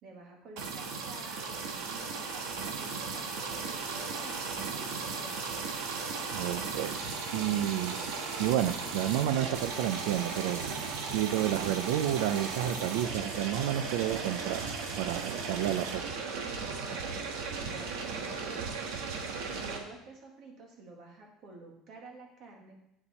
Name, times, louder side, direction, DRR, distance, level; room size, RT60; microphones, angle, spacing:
voice 1, 0.0-5.4 15.3-15.6 16.8-18.7 19.5-22.8, right 3 dB, 40° right, 1 dB, 1.9 m, -50 dB
sound 1, 0.6-19.8, right 4 dB, 65° right, 1.4 m, -36 dB
voice 2, 6.3-7.0 7.2-8.0 8.4-14.7 15.0-16.2, right 12 dB, 85° right, 9 dB, 0.5 m, -31 dB
8.8 x 7.0 x 4.2 m, 0.81 s
cardioid pair, 180°, 0 cm